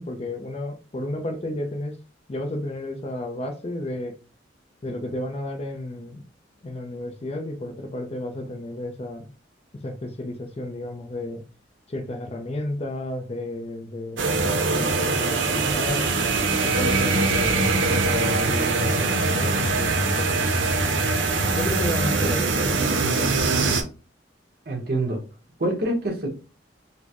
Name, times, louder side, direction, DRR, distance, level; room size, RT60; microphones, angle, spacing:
voice 1, 0.0-2.0 2.3-4.1 4.8-6.2 6.6-9.3 9.8-11.4 11.9-16.1 16.6-21.2 21.5-23.3, left 1 dB, 35° left, 0.5 m, -32 dB
sound 1, 14.2-23.8, right 3 dB, 85° right, 0.6 m, -22 dB
voice 2, 24.7-25.2 25.6-26.3, right 1 dB, 55° right, 1.1 m, -25 dB
4.1 x 2.1 x 2.9 m
head